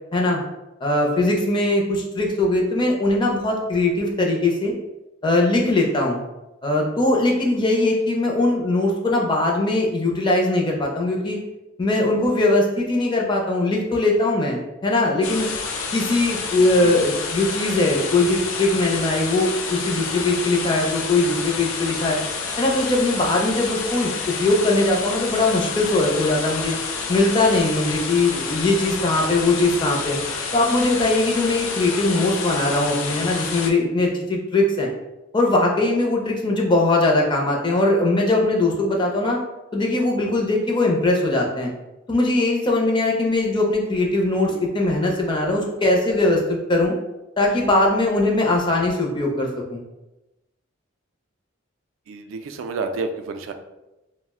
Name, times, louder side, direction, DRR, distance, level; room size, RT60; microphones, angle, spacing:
voice 1, 0.8-4.7 5.2-6.2 6.6-11.4 11.8-15.5 15.9-22.2 22.6-26.8 27.1-30.2 30.5-34.9 35.3-39.4 39.7-41.7 42.1-46.9 47.4-49.8, left 2 dB, 25° left, -1 dB, 0.4 m, -20 dB
sound 1, 15.2-33.7, left 5 dB, 85° left, 0.4 m, -29 dB
voice 2, 16.6-17.0 44.4-44.6 52.1-53.5, right 3 dB, 80° right, 6 dB, 0.3 m, -30 dB
2.4 x 2.0 x 3.5 m, 0.99 s
head